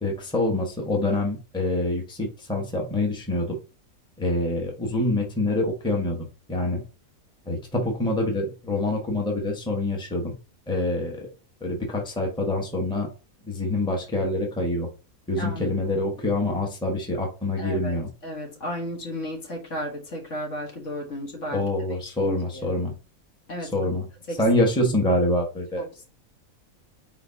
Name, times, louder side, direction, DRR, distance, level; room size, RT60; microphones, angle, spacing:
voice 1, 0.0-3.6 4.2-6.8 7.5-10.3 10.7-11.3 11.6-13.1 13.4-14.9 15.3-18.1 21.5-22.9 23.6-24.1 24.4-26.0, left 1 dB, 5° left, 1.1 m, -26 dB
voice 2, 15.4-15.8 17.6-21.7 22.0-22.8 23.5-23.9 24.3-24.4 25.8-26.0, equal, 60° left, 1.7 m, -34 dB
4.5 x 4.1 x 2.8 m
omnidirectional pair, 1.5 m